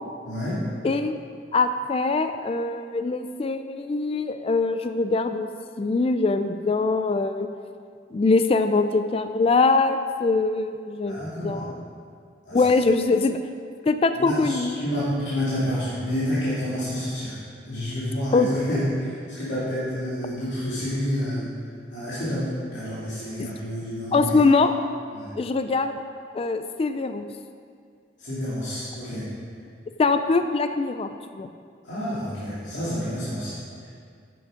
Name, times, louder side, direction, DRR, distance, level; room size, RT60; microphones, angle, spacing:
voice 1, 0.2-0.6 11.0-11.7 12.5-12.6 14.1-17.4 17.7-21.5 21.9-24.3 25.1-25.3 28.2-29.3 31.8-33.9, equal, 80° left, -11 dB, 2.6 m, -29 dB
voice 2, 0.8-1.2 1.5-5.5 5.8-7.5 8.1-11.8 12.5-13.4 13.9-14.8 18.3-18.5 23.4-23.5 24.1-24.7 25.4-26.0 26.3-27.3 30.0-31.5, left 3 dB, 30° left, 9 dB, 0.3 m, -23 dB
9.8 x 7.7 x 5.0 m, 2.2 s
head